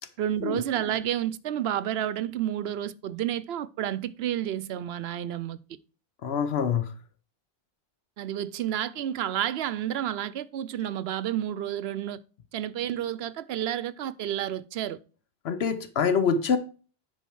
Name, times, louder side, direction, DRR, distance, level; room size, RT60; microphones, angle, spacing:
voice 1, 0.2-5.6 8.2-12.2 12.5-15.0, right 11 dB, 80° right, 0.8 m, -30 dB
voice 2, 6.2-6.9 15.4-16.6, left 6 dB, 75° left, 1.0 m, -25 dB
10.0 x 5.3 x 4.5 m
omnidirectional pair, 1.1 m